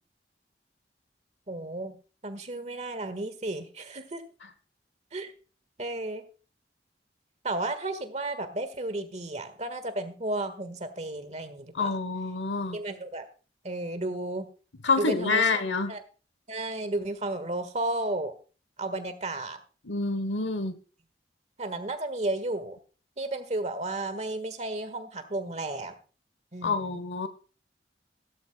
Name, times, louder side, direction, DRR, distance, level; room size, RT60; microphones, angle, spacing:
voice 1, 1.5-2.0 2.2-4.2 5.1-5.3 5.8-6.2 7.4-12.0 12.7-13.3 13.6-14.5 15.0-15.5 15.9-16.0 16.5-18.3 18.8-19.6 21.6-22.8 23.2-25.9 26.5-27.0, right 2 dB, 40° right, 10 dB, 1.5 m, -33 dB
voice 2, 11.7-12.8 14.8-15.9 19.8-20.8 26.6-27.3, left 4 dB, 85° left, 12 dB, 1.1 m, -27 dB
16.5 x 12.5 x 2.2 m, 0.36 s
head